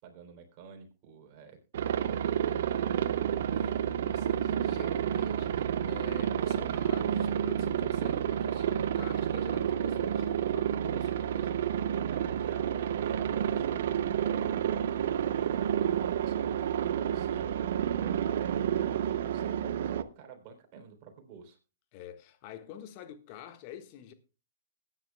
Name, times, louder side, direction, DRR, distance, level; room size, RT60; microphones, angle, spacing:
voice 1, 0.0-3.2 12.1-21.6, right 6 dB, 40° right, 3.3 m, -50 dB
Aircraft, 1.7-20.0, right 9 dB, 60° right, 0.7 m, -30 dB
voice 2, 3.5-11.7 21.9-24.1, left 10 dB, 40° left, 1.4 m, -47 dB
20.5 x 9.8 x 2.2 m
hypercardioid pair, 125°, 0 cm